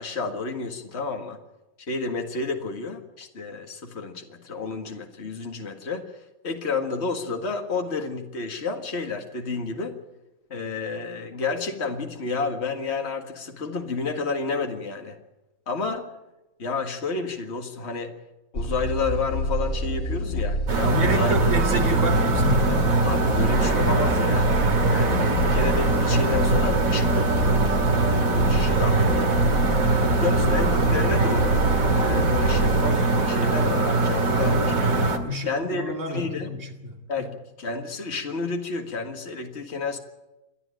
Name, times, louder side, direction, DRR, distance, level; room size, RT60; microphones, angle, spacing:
voice 1, 0.0-1.4 1.8-6.1 6.4-10.0 10.5-15.2 15.7-16.1 16.6-18.1 18.5-21.3 23.0-24.6 24.9-29.3 30.0-31.6 31.9-34.8 35.5-36.5 37.1-40.0, left 4 dB, 50° left, 4 dB, 2.1 m, -30 dB
sound 1, 18.5-32.8, equal, 85° left, 3.4 m, -28 dB
sound 2, 20.7-35.2, right 3 dB, 75° right, 2.5 m, -22 dB
voice 2, 20.8-23.0 35.2-37.3, equal, 60° right, 3 dB, 2.8 m, -29 dB
29.0 x 11.0 x 8.9 m, 0.99 s
omnidirectional pair, 1.5 m